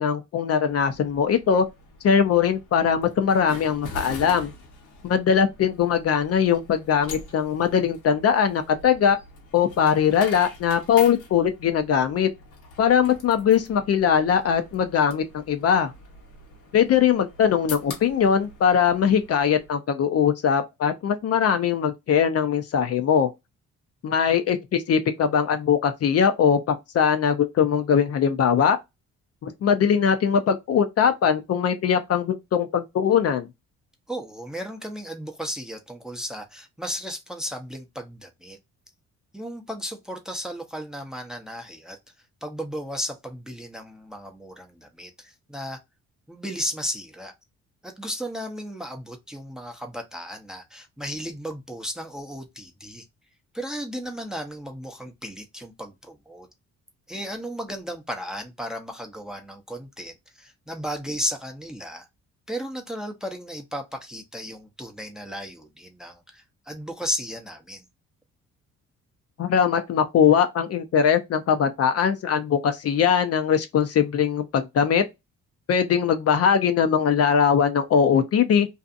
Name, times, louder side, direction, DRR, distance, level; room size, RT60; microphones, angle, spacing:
voice 1, 0.0-1.7 2.0-4.5 5.0-9.2 9.5-12.3 12.8-15.9 16.7-23.3 24.0-28.8 29.4-33.5 69.4-75.0 75.7-78.7, left 7 dB, 55° left, 0.5 m, -21 dB
sound 1, 0.7-19.7, left 3 dB, 80° left, 1.0 m, -43 dB
voice 2, 34.1-38.6 39.3-42.0 42.4-45.8 46.3-47.3 47.8-53.1 53.5-56.5 57.1-62.1 62.5-67.8, equal, ahead, 0.6 m, -34 dB
2.6 x 2.4 x 2.4 m
cardioid pair, 90°, 30 cm